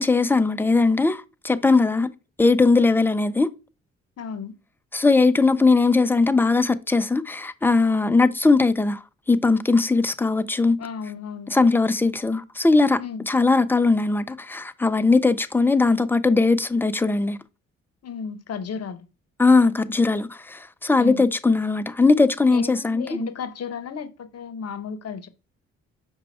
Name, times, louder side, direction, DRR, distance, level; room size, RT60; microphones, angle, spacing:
voice 1, 0.0-2.1 2.4-3.5 4.9-9.0 9.3-10.8 11.5-13.0 13.3-17.4 19.4-23.3, left 3 dB, 5° left, 0.4 m, -19 dB
voice 2, 4.2-4.6 10.8-11.6 13.0-13.3 18.0-19.1 21.0-21.3 22.5-25.3, left 6 dB, 45° left, 0.8 m, -34 dB
5.1 x 2.3 x 4.2 m
hypercardioid pair, 40°, 36 cm